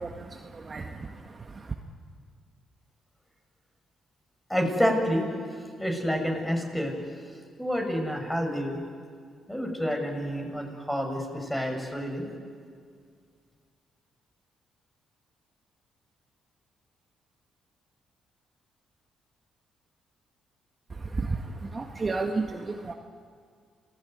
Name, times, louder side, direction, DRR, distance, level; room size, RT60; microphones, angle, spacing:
voice 1, 0.0-1.7 20.9-22.9, right 3 dB, 35° right, 3 dB, 1.8 m, -33 dB
voice 2, 4.5-5.3 5.8-6.9 7.6-8.8 9.5-12.3, equal, 10° left, 2 dB, 7.7 m, -28 dB
28.5 x 18.5 x 9.7 m, 2.1 s
supercardioid pair, 60°, 0 cm